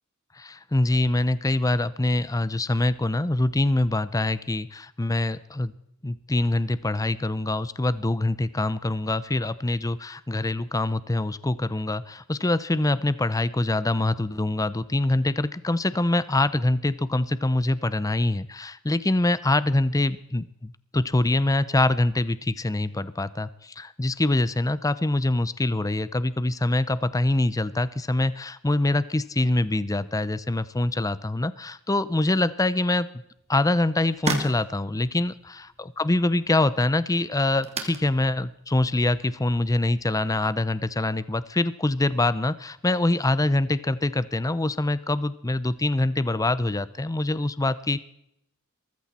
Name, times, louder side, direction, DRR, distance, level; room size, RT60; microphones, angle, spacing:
voice 1, 0.3-5.7 6.0-33.1 33.5-48.0, left 2 dB, 15° left, 16 dB, 0.6 m, -24 dB
sound 1, 33.3-40.6, right 3 dB, 30° right, 2.4 m, -38 dB
22.0 x 14.5 x 4.3 m, 0.77 s
head